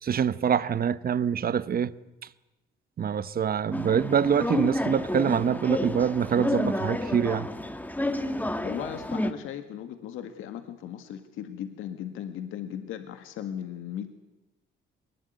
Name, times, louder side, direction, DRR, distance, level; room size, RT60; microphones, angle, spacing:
voice 1, 0.0-2.0 3.0-7.5, right 8 dB, 50° right, 1.1 m, -25 dB
sound 1, 3.7-9.3, left 1 dB, 10° left, 2.0 m, -30 dB
voice 2, 8.6-14.1, left 10 dB, 90° left, 1.9 m, -37 dB
23.0 x 20.0 x 9.7 m
cardioid pair, 90°, 20 cm